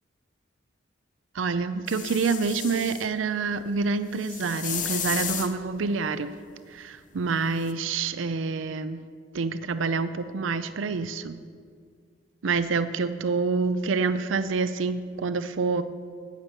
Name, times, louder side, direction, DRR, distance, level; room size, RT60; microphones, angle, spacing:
voice 1, 1.3-6.3 6.7-9.0 9.3-11.4 12.4-15.8, right 4 dB, 85° right, 12 dB, 0.5 m, -27 dB
sound 1, 1.9-3.1 4.2-5.5 7.7-7.8, left 9 dB, 45° left, 0.8 m, -33 dB
13.5 x 9.0 x 6.8 m, 2.1 s
head